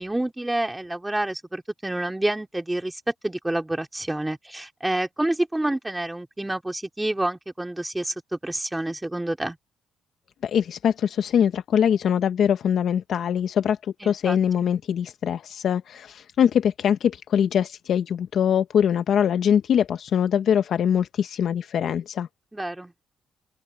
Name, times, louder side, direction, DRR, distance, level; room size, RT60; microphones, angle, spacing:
voice 1, 0.0-9.6 14.0-14.7 22.5-22.9, right 1 dB, 10° right, 2.6 m, -28 dB
voice 2, 10.4-22.3, left 8 dB, 60° left, 0.7 m, -23 dB
open air
cardioid pair, 115°, 0 cm